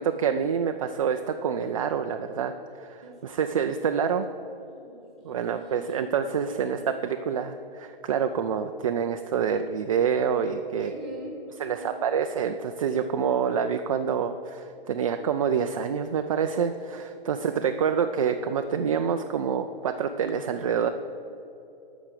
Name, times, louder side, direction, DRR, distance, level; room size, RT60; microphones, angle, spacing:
voice 1, 0.0-4.3 5.2-6.8 7.0-10.9 11.6-20.9, right 7 dB, 35° right, 6 dB, 0.4 m, -27 dB
voice 2, 3.0-3.4 4.6-5.9 6.5-7.3 10.8-12.1 17.3-17.9, right 1 dB, ahead, -2 dB, 2.6 m, -43 dB
17.0 x 6.1 x 6.7 m, 2.9 s
hypercardioid pair, 160°, 29 cm